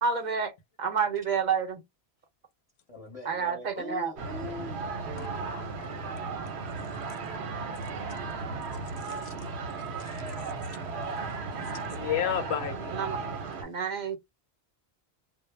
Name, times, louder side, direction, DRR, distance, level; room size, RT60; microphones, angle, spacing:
voice 1, 0.0-0.5 0.8-1.8 3.2-4.1 12.9-13.2 13.5-14.2, right 6 dB, 50° right, 0.7 m, -29 dB
voice 2, 2.9-4.9, left 3 dB, 35° left, 0.7 m, -41 dB
sound 1, 4.2-13.6, right 4 dB, 80° right, 0.9 m, -35 dB
voice 3, 5.2-5.9 9.0-9.3 10.0-13.0, left 9 dB, 80° left, 0.8 m, -35 dB
2.1 x 2.0 x 3.0 m
omnidirectional pair, 1.1 m